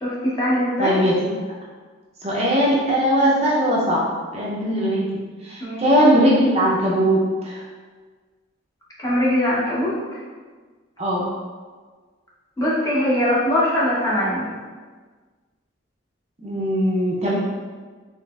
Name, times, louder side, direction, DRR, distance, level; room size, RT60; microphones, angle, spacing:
voice 1, 0.0-0.9 5.6-5.9 9.0-10.2 12.6-14.5, left 1 dB, 15° left, -8 dB, 0.8 m, -21 dB
voice 2, 0.8-1.1 2.2-4.1 4.3-7.6 11.0-11.3 16.4-17.3, equal, 30° right, -5 dB, 0.5 m, -20 dB
3.9 x 2.9 x 2.3 m, 1.5 s
head